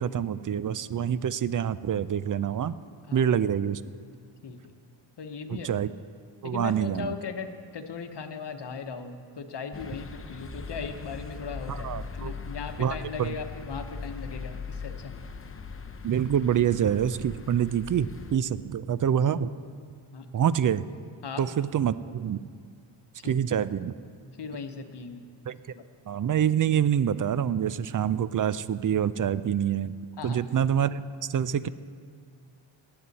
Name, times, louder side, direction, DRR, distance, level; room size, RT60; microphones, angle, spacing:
voice 1, 0.0-2.8 3.1-3.8 5.5-5.9 6.4-7.1 11.7-12.3 12.8-13.3 16.0-19.5 20.3-20.8 21.4-22.4 23.2-23.9 25.5-25.6 26.1-29.9 30.2-31.0 31.3-31.7, right 9 dB, 45° right, 16 dB, 0.4 m, -26 dB
voice 2, 4.4-4.8 5.2-5.7 6.4-15.1 20.1-20.3 21.2-21.5 23.2-23.3 24.4-25.2 25.7-25.8 30.2-30.4, left 5 dB, 55° left, 7 dB, 1.1 m, -38 dB
sound 1, 9.7-18.4, left 5 dB, 25° left, 0.7 m, -40 dB
19.0 x 7.8 x 4.1 m, 2.1 s
cardioid pair, 60°, 48 cm